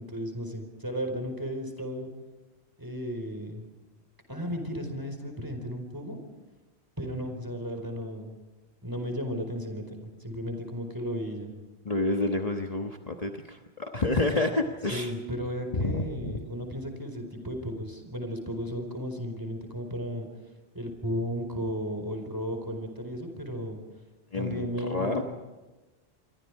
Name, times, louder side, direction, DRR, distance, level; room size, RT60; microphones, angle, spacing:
voice 1, 0.0-2.1 2.8-3.7 4.3-6.2 7.0-8.3 8.8-11.5 14.9-20.3 20.7-23.8 24.3-25.2, equal, 20° right, 5 dB, 4.6 m, -34 dB
voice 2, 11.8-15.1 15.7-16.3 24.3-25.2, left 2 dB, 35° left, 3 dB, 1.4 m, -29 dB
27.5 x 24.0 x 4.8 m, 1.2 s
omnidirectional pair, 1.1 m